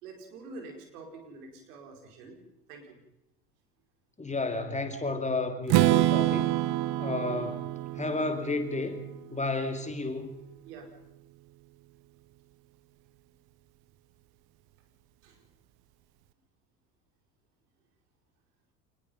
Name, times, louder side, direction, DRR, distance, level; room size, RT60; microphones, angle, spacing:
voice 1, 0.0-2.4 2.7-2.9 10.6-10.9 15.2-15.4, right 3 dB, 70° right, 3 dB, 5.1 m, -46 dB
voice 2, 4.2-6.5 7.0-10.3, left 3 dB, 15° left, 6 dB, 2.6 m, -32 dB
Strum, 5.7-9.6, right 16 dB, 50° right, 1.1 m, -27 dB
26.0 x 20.5 x 5.5 m, 0.84 s
figure-of-eight pair, 70°, 48 cm